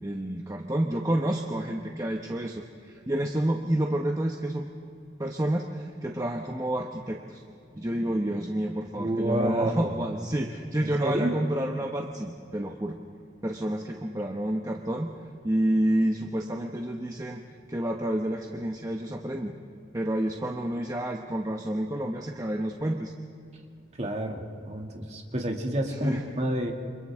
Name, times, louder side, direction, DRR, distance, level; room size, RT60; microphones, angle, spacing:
voice 1, 0.0-4.7 5.2-7.4 7.7-13.0 13.4-17.4 17.7-19.5 19.9-23.1 25.9-26.2, right 1 dB, 20° right, 1 dB, 1.0 m, -29 dB
voice 2, 9.0-9.8 10.8-11.3 24.0-26.7, right 1 dB, 35° right, 1 dB, 2.3 m, -29 dB
29.0 x 27.0 x 3.7 m, 2.4 s
head